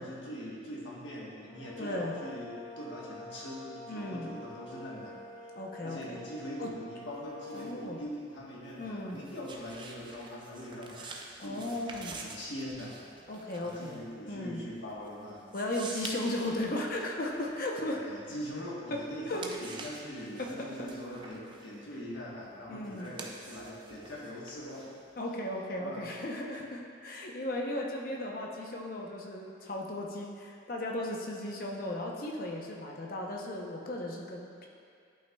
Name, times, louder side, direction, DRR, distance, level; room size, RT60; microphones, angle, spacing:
voice 1, 0.0-5.5 5.8-13.0 13.6-15.4 17.9-24.9 25.8-26.1, equal, 85° left, -5 dB, 1.2 m, -42 dB
sound 1, 1.4-8.0, left 2 dB, 25° left, 1.6 m, -47 dB
voice 2, 1.8-2.2 3.9-4.3 5.6-6.2 6.6-6.7 7.5-8.0 8.8-9.2 11.4-12.2 13.3-14.0 14.3-14.6 15.5-18.0 18.9-19.0 19.3-19.4 20.4-20.9 22.7-23.1 25.2-34.7, left 1 dB, 50° left, -1 dB, 0.8 m, -36 dB
sound 2, 7.0-18.7 19.1-25.2, right 3 dB, 25° right, 0.4 m, -48 dB
11.5 x 5.5 x 2.3 m, 2.3 s
head